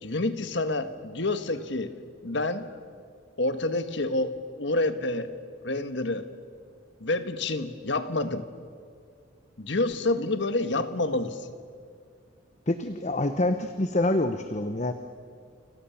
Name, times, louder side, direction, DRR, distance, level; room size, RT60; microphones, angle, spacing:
voice 1, 0.0-1.9 2.2-2.7 3.4-5.3 5.6-6.3 7.0-8.5 9.6-11.5, left 2 dB, 60° left, 10 dB, 1.5 m, -28 dB
voice 2, 12.7-14.9, left 1 dB, 35° left, 9 dB, 0.9 m, -26 dB
29.0 x 26.5 x 7.1 m, 2.1 s
head